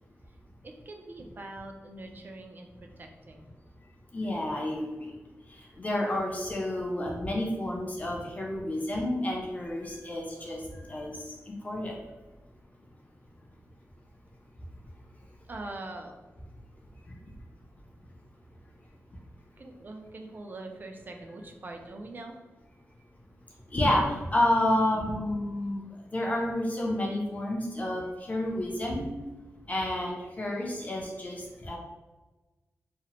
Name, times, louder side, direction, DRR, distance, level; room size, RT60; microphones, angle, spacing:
voice 1, 0.6-3.5 15.5-16.1 19.6-22.4, right 2 dB, 35° right, 3 dB, 0.3 m, -43 dB
voice 2, 4.1-5.1 5.8-10.6 10.9-11.2 11.6-11.9 23.7-25.8 26.1-29.1 29.7-31.8, left 1 dB, 30° left, -2 dB, 0.4 m, -29 dB
2.8 x 2.0 x 2.9 m, 1.2 s
wide cardioid pair, 135°, 5 cm